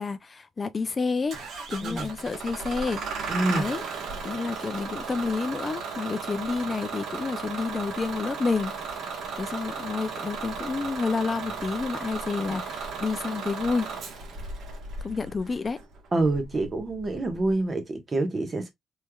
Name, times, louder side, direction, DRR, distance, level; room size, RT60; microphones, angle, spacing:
voice 1, 0.0-1.4 1.7-3.0 3.5-3.8 4.2-8.7 9.4-13.9 15.0-15.8, left 4 dB, 35° left, 0.4 m, -29 dB
Bus / Engine starting, 1.3-17.5, right 5 dB, 70° right, 1.2 m, -35 dB
voice 2, 3.3-3.7 16.1-18.7, right 2 dB, 35° right, 1.2 m, -27 dB
3.3 x 3.2 x 2.3 m
cardioid pair, 90°, 0 cm